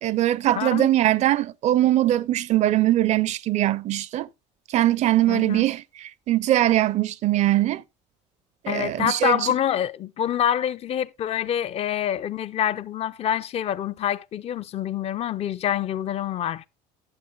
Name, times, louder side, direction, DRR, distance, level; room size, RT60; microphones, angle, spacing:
voice 1, 0.0-4.3 4.7-7.8 8.6-9.5, right 14 dB, 50° right, 0.4 m, -21 dB
voice 2, 0.6-0.9 5.3-5.6 8.7-16.6, left 10 dB, 40° left, 0.5 m, -26 dB
11.5 x 7.7 x 2.3 m
supercardioid pair, 90°, 16 cm